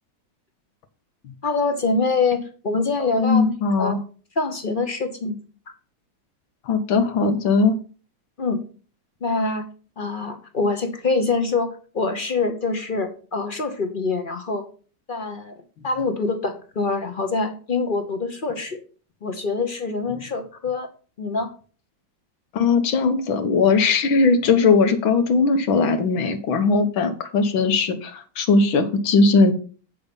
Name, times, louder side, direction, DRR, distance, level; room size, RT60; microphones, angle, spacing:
voice 1, 1.4-4.0 4.4-5.4 8.4-8.6 9.2-9.7 10.0-11.7 11.9-14.7 15.1-18.8 19.2-20.9 21.2-21.5, left 3 dB, 40° left, 7 dB, 0.8 m, -25 dB
voice 2, 3.0-4.0 6.6-7.8 22.5-29.5, left 4 dB, 85° left, 8 dB, 1.9 m, -19 dB
8.4 x 6.8 x 5.3 m, 0.39 s
omnidirectional pair, 2.1 m